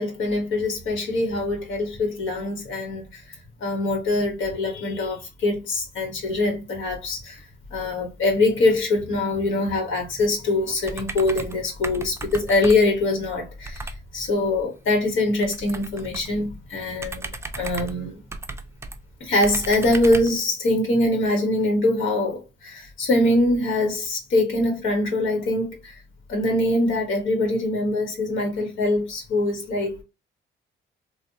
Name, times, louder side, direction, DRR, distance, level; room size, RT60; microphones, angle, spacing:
voice 1, 0.0-17.3 17.6-18.2 19.2-26.0 26.3-30.0, left 2 dB, 75° left, 1.3 m, -23 dB
sound 1, 10.8-11.6 11.8-13.0 13.6-14.0 15.4-16.4 17.0-19.0 19.4-20.4, right 2 dB, 15° right, 0.4 m, -35 dB
3.3 x 2.2 x 2.7 m
cardioid pair, 90°, 20 cm